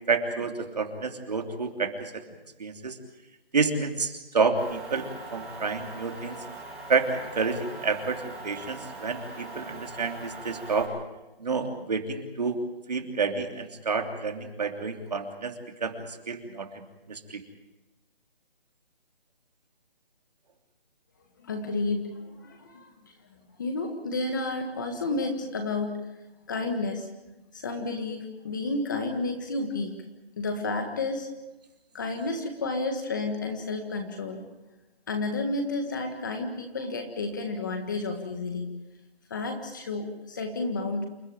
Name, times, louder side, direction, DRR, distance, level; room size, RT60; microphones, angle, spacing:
voice 1, 0.1-2.2 2.6-3.0 3.5-6.4 6.9-10.9 11.4-12.6 12.9-17.4, right 4 dB, 45° right, 5 dB, 3.2 m, -29 dB
Motor vehicle (road) / Engine, 4.5-10.8, right 2 dB, 5° right, 3.3 m, -42 dB
voice 2, 21.4-23.1 23.6-25.9 26.5-27.1 27.5-30.0 30.4-31.3 31.9-34.4 35.1-38.7 39.3-41.0, left 3 dB, 20° left, 5 dB, 1.7 m, -31 dB
28.5 x 14.5 x 9.0 m, 1.0 s
hypercardioid pair, 175°, 30 cm